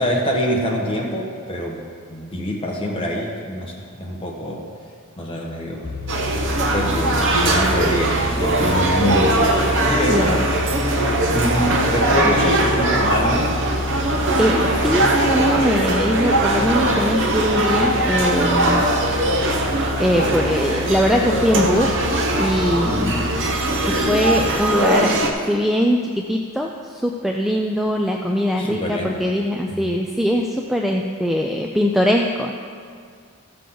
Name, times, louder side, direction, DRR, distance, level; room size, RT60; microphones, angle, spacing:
voice 1, 0.0-1.8 2.1-4.6 5.2-5.9 6.2-9.6 9.9-10.3 10.9-11.0 11.3-13.5 22.8-23.3 28.6-29.3 29.7-29.9, equal, 25° left, -2 dB, 1.4 m, -25 dB
sound 1, 5.8-24.5, left 1 dB, 40° left, 0.7 m, -29 dB
sound 2, 6.1-25.3, right 1 dB, 60° right, 1.0 m, -20 dB
voice 2, 10.1-10.4 12.2-12.3 14.4-18.8 20.0-22.0 22.4-23.1 23.9-25.2 25.5-32.5, equal, ahead, 1 dB, 0.3 m, -21 dB
13.5 x 6.6 x 3.9 m, 2.1 s
head